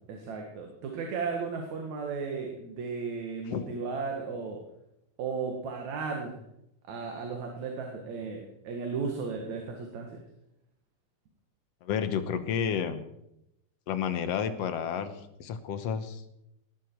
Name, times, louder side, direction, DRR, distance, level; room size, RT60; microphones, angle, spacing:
voice 1, 0.1-4.6 5.2-6.4 6.8-10.2, right 5 dB, 75° right, 2 dB, 3.1 m, -35 dB
voice 2, 11.8-13.0 13.9-16.2, left 7 dB, 65° left, 10 dB, 2.1 m, -31 dB
19.0 x 12.5 x 4.6 m, 0.81 s
omnidirectional pair, 3.3 m